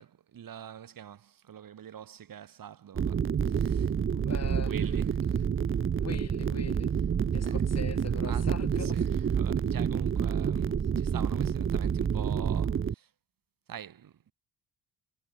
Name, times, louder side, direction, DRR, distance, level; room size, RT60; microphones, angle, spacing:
voice 1, 0.0-3.9 4.6-5.2 6.9-7.0 7.4-7.7 8.2-13.1 13.7-14.3, right 9 dB, 55° right, 1.8 m, -45 dB
sound 1, 2.9-12.9, right 7 dB, 30° right, 0.7 m, -28 dB
voice 2, 4.1-5.1 5.9-6.9 7.3-9.1 10.7-10.8, left 6 dB, 40° left, 5.2 m, -42 dB
cardioid pair, 120°, 40 cm